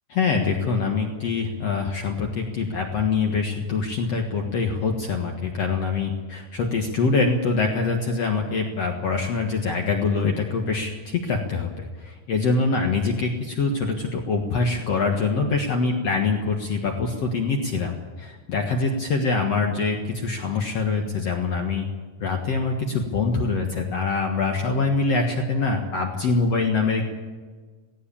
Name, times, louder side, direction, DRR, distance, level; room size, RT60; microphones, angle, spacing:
voice 1, 0.1-21.9 22.2-27.1, left 4 dB, 55° left, 2 dB, 2.4 m, -24 dB
17.5 x 17.5 x 8.6 m, 1.4 s
omnidirectional pair, 3.9 m